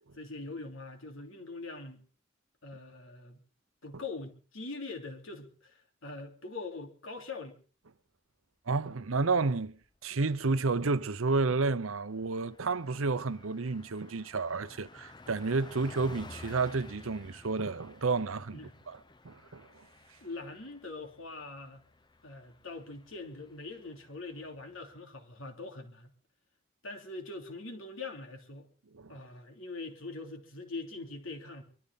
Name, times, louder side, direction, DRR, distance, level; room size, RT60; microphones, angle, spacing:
voice 1, 0.1-2.0 2.6-3.4 3.8-7.6 18.5-18.7 20.2-21.8 22.2-26.1 26.8-28.7 29.1-31.6, left 3 dB, 80° left, 3.1 m, -43 dB
voice 2, 8.7-19.0 19.2-19.9 28.9-29.2, right 3 dB, 85° right, 0.8 m, -31 dB
Car passing by, 9.8-10.0 10.3-10.5 10.7-25.0, left 2 dB, 20° left, 0.7 m, -54 dB
23.5 x 13.5 x 4.1 m
head